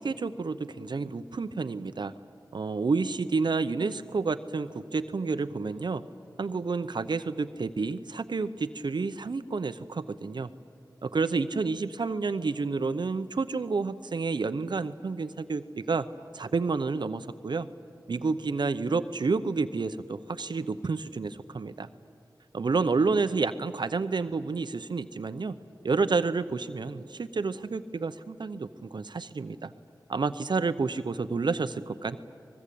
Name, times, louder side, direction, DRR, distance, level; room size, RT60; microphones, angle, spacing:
voice 1, 0.0-2.1 2.5-6.0 6.4-10.5 11.0-16.0 16.3-17.7 18.1-21.9 22.5-25.5 25.8-29.7 30.1-32.2, right 4 dB, 70° right, 11 dB, 0.8 m, -29 dB
25.5 x 20.5 x 8.5 m, 2.5 s
wide cardioid pair, 55°, 8 cm